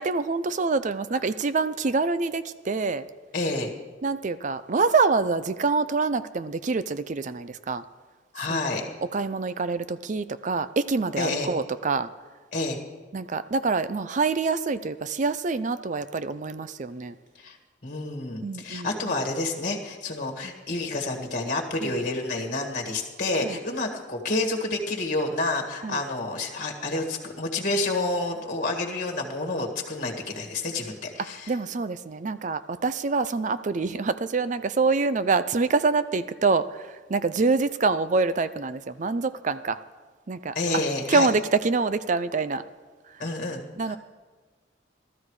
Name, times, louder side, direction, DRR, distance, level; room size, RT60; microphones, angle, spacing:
voice 1, 0.0-3.0 4.0-7.8 8.5-8.9 9.1-12.1 13.1-17.2 18.4-19.1 21.8-21.9 23.4-23.6 25.8-26.0 31.5-36.7 37.1-39.8 40.3-40.5 41.1-42.6 43.8-44.0, right 4 dB, 40° right, 13 dB, 0.5 m, -26 dB
voice 2, 3.3-3.7 8.3-8.9 11.2-11.5 12.5-12.8 17.4-17.6 17.8-31.5 40.6-41.3 43.2-44.0, left 2 dB, 45° left, 1 dB, 1.8 m, -29 dB
16.0 x 13.0 x 4.8 m, 1.4 s
head